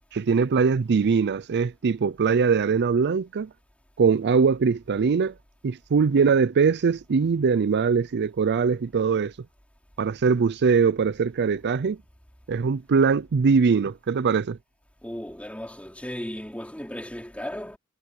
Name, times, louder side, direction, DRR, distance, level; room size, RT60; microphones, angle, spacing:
voice 1, 0.1-3.5 4.0-5.3 5.6-9.3 10.0-12.0 12.5-14.6, right 5 dB, 50° right, 0.4 m, -22 dB
voice 2, 15.0-17.8, equal, 5° left, 4.7 m, -35 dB
head